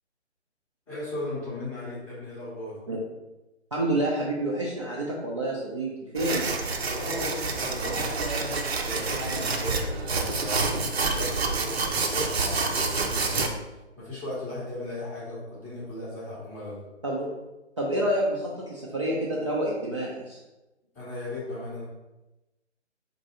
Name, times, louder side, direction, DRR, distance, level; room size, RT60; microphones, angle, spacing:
voice 1, 0.9-2.7 6.9-13.6 14.0-16.8 20.9-21.8, left 2 dB, 5° left, -10 dB, 0.7 m, -37 dB
voice 2, 3.7-6.5 17.0-17.3 17.8-20.4, right 1 dB, 25° right, -5 dB, 0.4 m, -28 dB
sound 1, 6.2-13.5, right 3 dB, 60° right, 0.7 m, -28 dB
4.5 x 2.6 x 4.2 m, 1.0 s
figure-of-eight pair, 145°, 35 cm